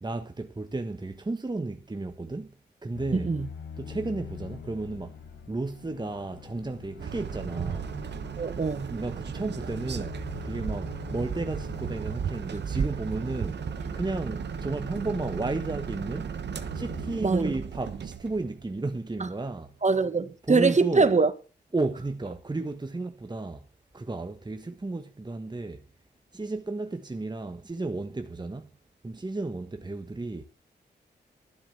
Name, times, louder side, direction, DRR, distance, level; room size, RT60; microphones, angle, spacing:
voice 1, 0.0-3.3 3.8-5.2 5.5-8.0 8.9-13.6 13.9-16.3 16.7-19.8 20.4-21.1 21.7-23.7 23.9-25.9 26.3-28.7 29.0-30.4, right 2 dB, 25° right, 1.3 m, -33 dB
sound 1, 2.9-17.2, left 6 dB, 80° left, 1.7 m, -44 dB
voice 2, 3.1-3.5 8.4-8.9 17.2-17.5 19.2-19.3 19.8-21.3, right 4 dB, 40° right, 1.6 m, -23 dB
sound 2, 7.0-19.0, right 7 dB, 70° right, 1.2 m, -35 dB
12.5 x 7.2 x 7.1 m
supercardioid pair, 45°, 18 cm